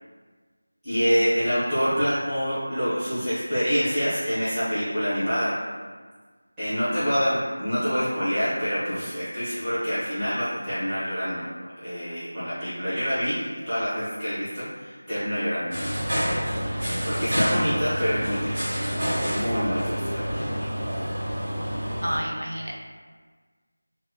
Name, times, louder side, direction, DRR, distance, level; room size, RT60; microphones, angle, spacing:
voice 1, 0.8-5.5 6.6-11.4 11.8-15.7 17.0-18.8 19.3-20.7, equal, 10° right, -21 dB, 0.7 m, -26 dB
sound 1, 15.7-22.2, equal, 40° right, 1.1 m, -28 dB
voice 2, 22.0-22.7, equal, 75° right, -2 dB, 0.5 m, -29 dB
2.9 x 2.0 x 2.2 m, 1.5 s
figure-of-eight pair, 170°, 0 cm